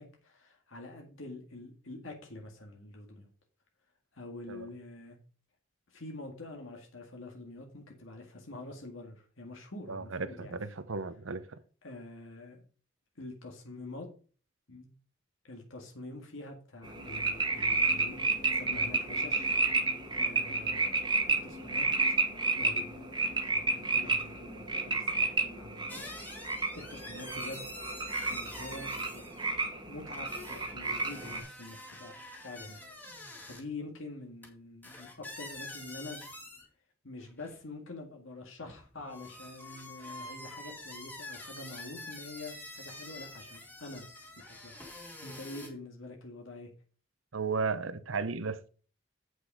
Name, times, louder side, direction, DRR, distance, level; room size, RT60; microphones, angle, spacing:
voice 1, 0.0-3.3 4.1-5.2 5.9-10.6 11.8-12.6 13.2-14.1 14.7-14.9 15.4-18.2 18.5-19.5 20.1-21.0 21.3-21.9 22.5-23.0 23.5-26.1 26.7-27.7 28.3-29.2 29.8-32.1 32.4-32.8 33.2-36.2 37.0-44.1 44.4-44.7 45.2-46.7, left 2 dB, 85° left, 1.9 m, -46 dB
voice 2, 9.9-11.4 47.3-48.7, right 4 dB, 90° right, 0.8 m, -34 dB
sound 1, 16.8-31.4, right 3 dB, 20° right, 1.2 m, -31 dB
sound 2, 16.9-24.5, left 3 dB, 65° left, 2.1 m, -51 dB
sound 3, 25.9-29.5 30.1-33.6 34.4-34.5 34.8-36.7 37.2-37.6 38.6-45.7, left 1 dB, 10° left, 1.6 m, -46 dB
8.0 x 6.3 x 4.9 m
head